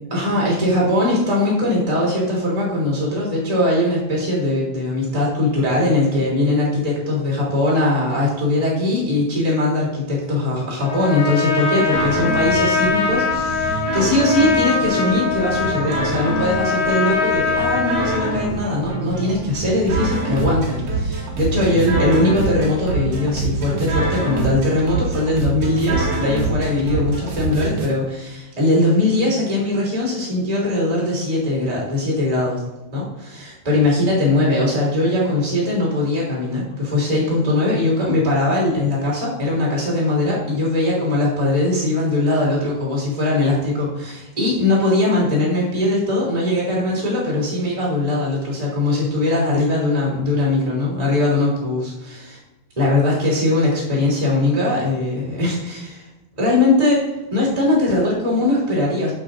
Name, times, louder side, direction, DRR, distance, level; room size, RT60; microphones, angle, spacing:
voice 1, 0.1-32.6 32.9-52.4 52.7-56.0 56.3-59.1, left 2 dB, 10° right, -5 dB, 2.6 m, -20 dB
Trumpet, 10.8-18.5, left 5 dB, 80° left, 3.5 m, -22 dB
sound 1, 11.9-27.9, right 3 dB, 50° right, 2.0 m, -25 dB
sound 2, 17.3-21.0, right 5 dB, 70° right, 4.4 m, -38 dB
13.5 x 5.4 x 4.0 m, 1.0 s
omnidirectional pair, 5.1 m